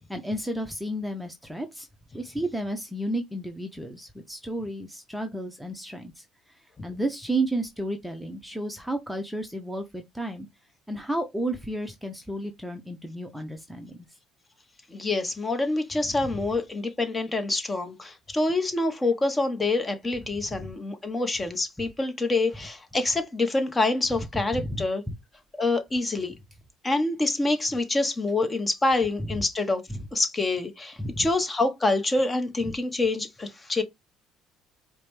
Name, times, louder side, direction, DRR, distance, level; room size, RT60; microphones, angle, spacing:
voice 1, 0.1-1.9 2.1-6.2 6.8-10.5 10.9-14.1 16.1-16.2 20.4-20.7 24.1-24.3 24.5-25.1 29.2-29.3 29.9-30.1 31.0-31.3 32.6-32.7, right 1 dB, ahead, 0.7 m, -32 dB
voice 2, 14.9-25.0 25.6-26.3 26.8-29.8 30.1-33.8, left 2 dB, 20° left, 1.0 m, -26 dB
4.7 x 2.2 x 3.2 m
supercardioid pair, 85°, 0 cm